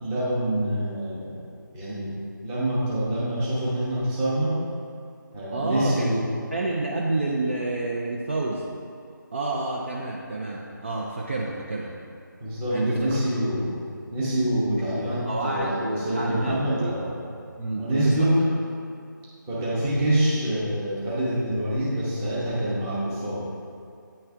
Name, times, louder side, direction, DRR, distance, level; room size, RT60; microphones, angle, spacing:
voice 1, 0.0-1.4 1.7-2.1 2.4-4.6 5.3-6.2 12.4-13.8 14.1-17.1 17.8-18.5 19.5-23.5, right 1 dB, 10° right, -9 dB, 0.8 m, -26 dB
voice 2, 5.5-6.0 6.5-8.6 9.3-12.0 12.7-13.2 15.0-16.9 17.6-18.3, right 2 dB, 35° right, -3 dB, 0.4 m, -29 dB
8.9 x 3.2 x 3.5 m, 2.4 s
figure-of-eight pair, 160°, 11 cm